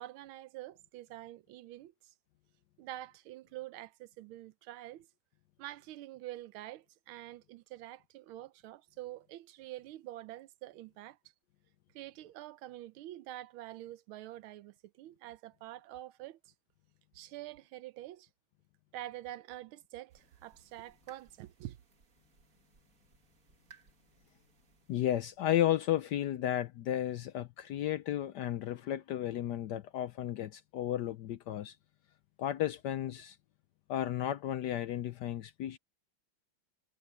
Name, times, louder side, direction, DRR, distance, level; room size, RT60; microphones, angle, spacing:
voice 1, 0.0-1.9 2.8-5.1 5.6-11.2 11.9-16.4 17.1-18.3 18.9-21.8, right 15 dB, 80° right, 1.5 m, -46 dB
sound 1, 20.1-25.4, right 5 dB, 40° right, 2.2 m, -64 dB
voice 2, 24.9-31.8 32.4-33.4 33.9-35.8, left 12 dB, 70° left, 1.0 m, -33 dB
omnidirectional pair, 2.3 m